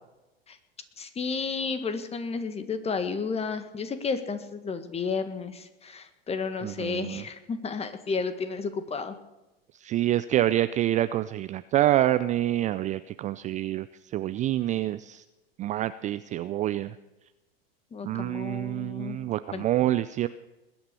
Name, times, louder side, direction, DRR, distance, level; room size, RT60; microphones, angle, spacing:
voice 1, 1.0-9.1 17.9-19.2 19.5-19.6, left 5 dB, 20° left, 10 dB, 1.7 m, -32 dB
voice 2, 6.6-7.2 9.8-13.9 14.1-15.2 15.6-16.9 18.0-20.3, right 13 dB, 25° right, 14 dB, 0.4 m, -27 dB
21.0 x 8.7 x 6.9 m, 1.0 s
figure-of-eight pair, 90°, 31 cm